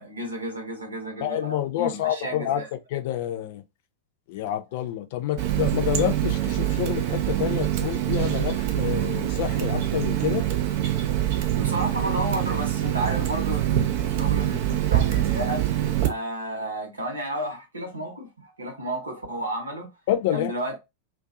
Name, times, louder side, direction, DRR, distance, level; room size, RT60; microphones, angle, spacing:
voice 1, 0.0-2.7 11.2-19.9 20.3-20.8, right 1 dB, 75° right, 1.0 m, -32 dB
voice 2, 1.2-3.6 4.3-10.4 20.1-20.5, left 12 dB, 50° left, 0.5 m, -28 dB
Water tap faucet, 5.4-16.1, right 12 dB, 45° right, 0.5 m, -25 dB
2.6 x 2.2 x 2.4 m
figure-of-eight pair, 90°, 0 cm